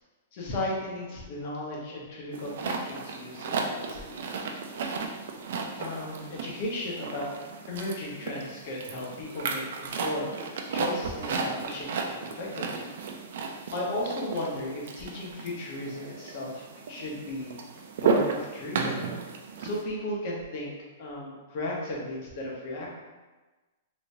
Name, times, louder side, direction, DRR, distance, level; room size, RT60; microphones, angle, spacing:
voice 1, 0.3-4.2 5.8-7.3 7.7-12.9 13.7-19.1 19.6-20.7 21.0-22.9, left 1 dB, 45° left, -4 dB, 1.0 m, -35 dB
sound 1, 2.3-19.8, right 4 dB, 65° right, 0.4 m, -34 dB
3.3 x 3.0 x 2.7 m, 1.2 s
hypercardioid pair, 155°, 0 cm